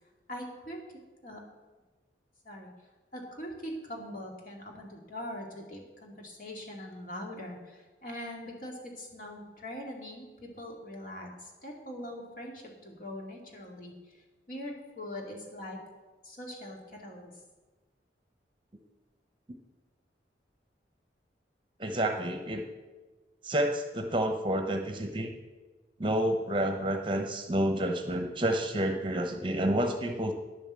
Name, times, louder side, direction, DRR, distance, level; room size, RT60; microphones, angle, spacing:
voice 1, 0.3-1.4 2.4-2.7 3.1-14.2 14.5-15.8 16.2-17.3, left 1 dB, 50° left, 0 dB, 2.3 m, -42 dB
voice 2, 21.8-22.6 23.4-25.3 26.0-30.3, right 1 dB, 25° right, 5 dB, 0.9 m, -29 dB
10.0 x 7.2 x 7.5 m, 1.3 s
head